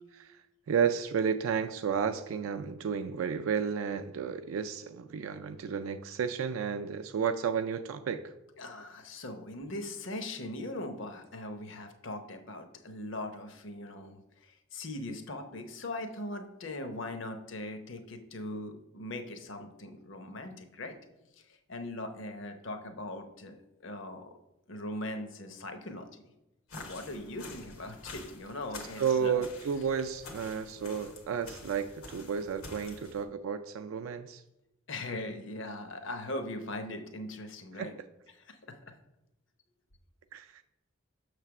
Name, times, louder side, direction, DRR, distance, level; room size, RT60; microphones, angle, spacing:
voice 1, 0.7-8.3 29.0-34.4 37.8-37.9 40.3-40.6, right 6 dB, 80° right, 8 dB, 0.3 m, -32 dB
voice 2, 8.6-21.0 21.5-23.6 23.8-24.3 24.7-26.1 26.7-29.4 34.9-38.0 38.3-38.9, left 1 dB, 65° left, 7 dB, 0.8 m, -40 dB
sound 1, 26.7-33.2, left 3 dB, 90° left, 1.3 m, -48 dB
6.5 x 3.3 x 5.9 m, 0.93 s
head